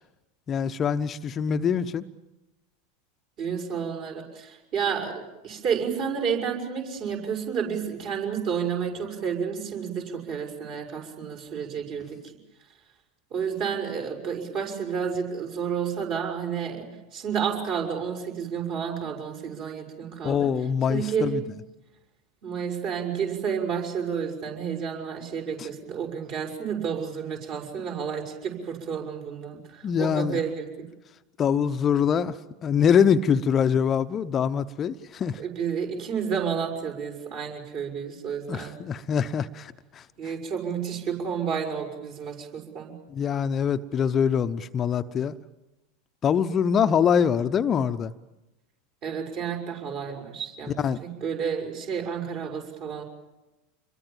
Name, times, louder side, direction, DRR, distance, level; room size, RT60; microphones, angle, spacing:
voice 1, 0.5-2.0 20.2-21.4 29.8-30.4 31.4-32.4 32.6-35.4 38.5-40.0 43.1-45.3 46.2-48.1 50.8-51.0, left 7 dB, 30° left, 0.8 m, -24 dB
voice 2, 3.4-12.7 13.3-20.5 20.9-21.5 22.4-30.9 35.4-38.8 40.2-43.0 49.0-53.0, right 7 dB, 45° right, 6.2 m, -31 dB
27.5 x 22.5 x 7.4 m
figure-of-eight pair, 85°, 0 cm